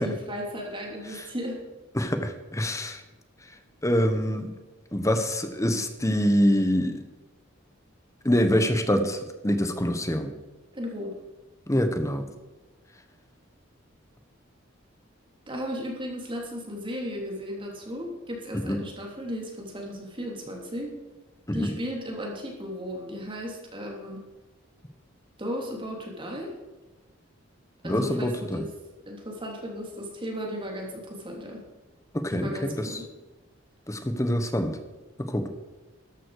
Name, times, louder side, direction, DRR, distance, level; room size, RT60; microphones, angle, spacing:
voice 1, 0.0-1.6 10.7-11.2 15.5-21.0 21.5-24.2 25.4-26.5 27.8-28.7 29.1-31.6 32.3-33.1, equal, 25° right, 0 dB, 3.1 m, -35 dB
voice 2, 1.9-3.0 3.8-4.5 4.9-7.0 8.2-10.3 11.7-12.3 18.5-18.8 21.5-21.7 27.8-28.6 32.1-32.9 33.9-34.8 35.2-35.5, equal, 15° left, 8 dB, 1.4 m, -25 dB
13.5 x 11.0 x 5.0 m, 1.2 s
head